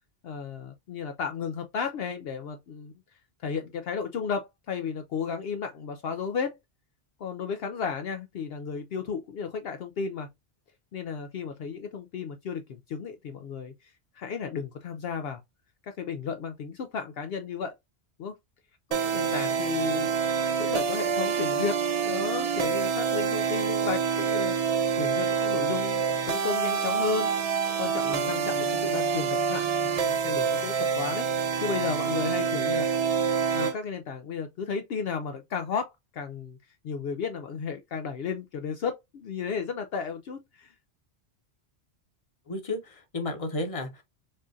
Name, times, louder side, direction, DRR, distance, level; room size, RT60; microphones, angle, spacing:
voice 1, 0.2-2.9 3.4-6.6 7.2-10.3 10.9-15.4 15.8-17.7 18.2-18.4 18.9-20.1 20.6-21.8 22.0-24.5 25.0-27.3 27.8-29.7 30.0-31.3 31.6-32.9 33.5-36.6 36.8-40.7, left 6 dB, 70° left, 0.8 m, -33 dB
sound 1, 18.9-33.7, right 6 dB, 50° right, 0.5 m, -27 dB
voice 2, 42.5-44.0, left 2 dB, 35° left, 1.0 m, -32 dB
5.4 x 2.5 x 2.6 m
omnidirectional pair, 1.1 m